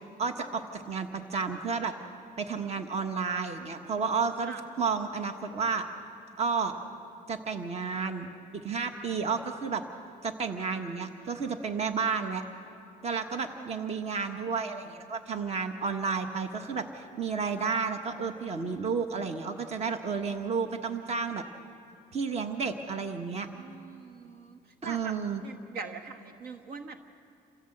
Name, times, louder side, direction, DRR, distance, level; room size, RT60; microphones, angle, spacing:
voice 1, 0.2-1.9 2.4-5.8 6.4-6.7 7.3-9.8 10.2-12.4 13.0-21.4 22.1-23.5 24.8-25.4, right 5 dB, 40° right, 6 dB, 1.4 m, -31 dB
voice 2, 13.6-14.1 23.5-24.6 24.8-25.1 25.4-27.0, right 5 dB, 65° right, 6 dB, 1.3 m, -43 dB
28.0 x 16.0 x 7.9 m, 2.6 s
cardioid pair, 110°, 17 cm